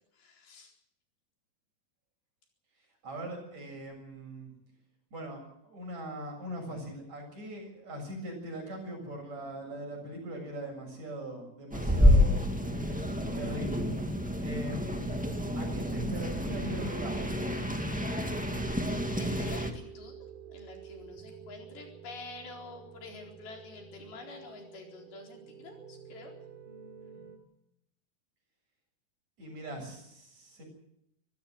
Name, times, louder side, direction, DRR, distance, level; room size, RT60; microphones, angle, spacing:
voice 1, 0.1-0.7 18.9-20.1 20.5-26.4, left 3 dB, 90° left, 1 dB, 6.2 m, -47 dB
voice 2, 3.0-4.5 5.1-12.5 13.3-13.9 14.4-15.2 15.5-17.4 29.4-30.6, right 1 dB, 45° right, 2 dB, 8.3 m, -41 dB
sound 1, 9.4-27.4, right 6 dB, 75° right, 5.1 m, -52 dB
sound 2, 11.7-19.7, left 1 dB, 10° right, 0.4 m, -28 dB
25.0 x 15.0 x 7.8 m, 0.77 s
omnidirectional pair, 4.2 m